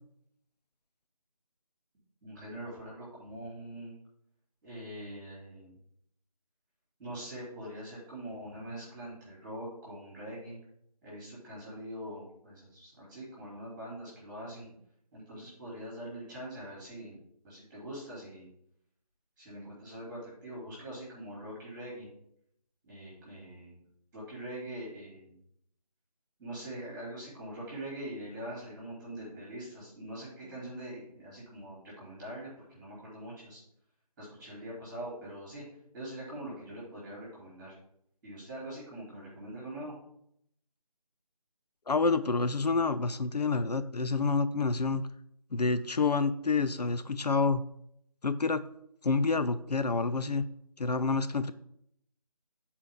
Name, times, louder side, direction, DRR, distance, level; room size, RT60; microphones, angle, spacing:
voice 1, 2.2-3.9 4.6-5.7 7.0-10.6 11.0-14.8 15.1-18.5 19.4-22.1 22.8-23.8 24.1-25.4 26.4-33.6 34.2-35.6 35.9-37.7 38.2-39.9, right 1 dB, 10° right, -6 dB, 3.2 m, -43 dB
voice 2, 41.9-45.1 45.5-47.6 48.2-48.6 49.0-50.5 50.8-51.5, left 4 dB, 85° left, 12 dB, 0.6 m, -28 dB
10.0 x 4.5 x 3.8 m, 0.73 s
figure-of-eight pair, 165°, 20 cm